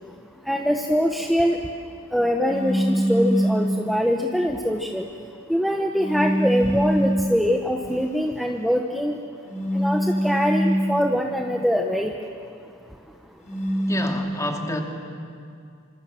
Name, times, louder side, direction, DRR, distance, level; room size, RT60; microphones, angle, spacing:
voice 1, 0.5-1.6 2.1-5.1 5.5-9.2 9.7-12.1, equal, ahead, 3 dB, 1.0 m, -23 dB
sound 1, 2.4-3.8 5.9-7.3 9.5-11.0 13.4-14.1, equal, 40° left, 4.0 m, -23 dB
voice 2, 13.9-14.8, left 1 dB, 15° left, 2 dB, 2.5 m, -28 dB
27.0 x 26.0 x 7.5 m, 2.4 s
head